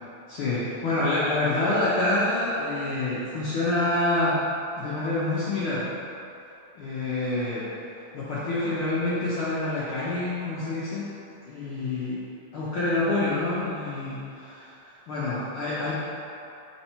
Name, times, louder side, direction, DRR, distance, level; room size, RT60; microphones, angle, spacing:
voice 1, 0.3-4.4 4.8-5.8 6.7-7.7 8.1-11.0 11.5-12.2 12.5-15.9, left 2 dB, 70° left, -10 dB, 1.3 m, -27 dB
4.4 x 3.9 x 5.5 m, 2.8 s
omnidirectional pair, 3.3 m